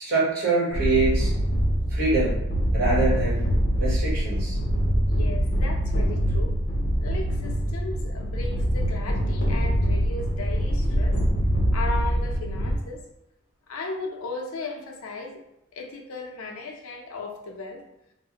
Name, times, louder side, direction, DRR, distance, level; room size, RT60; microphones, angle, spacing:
voice 1, 0.0-1.3 1.9-2.4 2.7-3.5 3.8-4.6, right 3 dB, 45° right, -6 dB, 1.1 m, -24 dB
sound 1, 0.7-12.8, equal, 45° left, 0.7 m, -24 dB
voice 2, 5.1-6.6 7.0-11.2 11.7-13.0 13.7-15.4 15.7-17.8, left 3 dB, 85° left, 1 dB, 0.5 m, -36 dB
3.1 x 2.0 x 2.8 m, 0.83 s
head